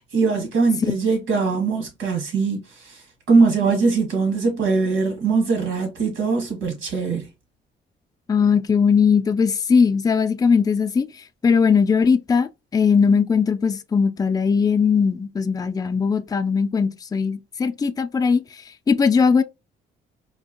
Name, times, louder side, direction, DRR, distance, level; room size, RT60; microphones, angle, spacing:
voice 1, 0.0-3.0 3.3-7.3, right 4 dB, 85° right, 1.8 m, -21 dB
voice 2, 8.3-11.1 11.4-18.4 18.9-19.4, left 5 dB, 20° left, 0.4 m, -19 dB
4.4 x 2.4 x 2.7 m
cardioid pair, 90°, 20 cm